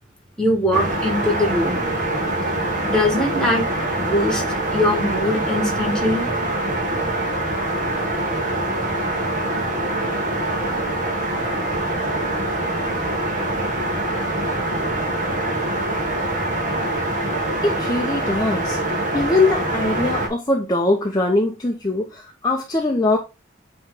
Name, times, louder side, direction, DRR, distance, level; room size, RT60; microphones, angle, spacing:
voice 1, 0.4-1.8 2.8-3.6 4.0-4.4 4.7-6.2, left 1 dB, 5° left, 1 dB, 1.7 m, -21 dB
sound 1, 0.7-20.3, right 1 dB, 45° right, 1.7 m, -24 dB
voice 2, 17.6-18.8 19.1-23.2, left 2 dB, 20° left, 0 dB, 0.8 m, -21 dB
8.4 x 3.2 x 3.8 m, 0.28 s
head